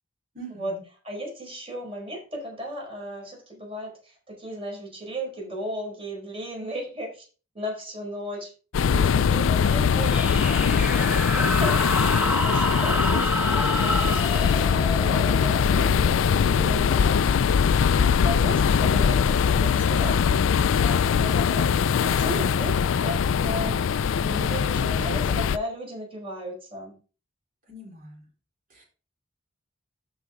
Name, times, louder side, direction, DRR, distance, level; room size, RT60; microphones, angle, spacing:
voice 1, 0.3-0.8 27.7-28.2 28.7-28.8, right 2 dB, 45° right, -2 dB, 4.3 m, -43 dB
voice 2, 1.0-7.3 7.5-8.5 8.9-17.7 18.0-20.4 20.8-21.7 22.0-27.0, equal, 30° right, 0 dB, 4.7 m, -36 dB
sound 1, 8.7-25.6, left 7 dB, 75° left, 0.4 m, -22 dB
sound 2, 9.9-17.1, equal, 10° right, 0.9 m, -29 dB
13.0 x 5.1 x 3.6 m, 0.36 s
head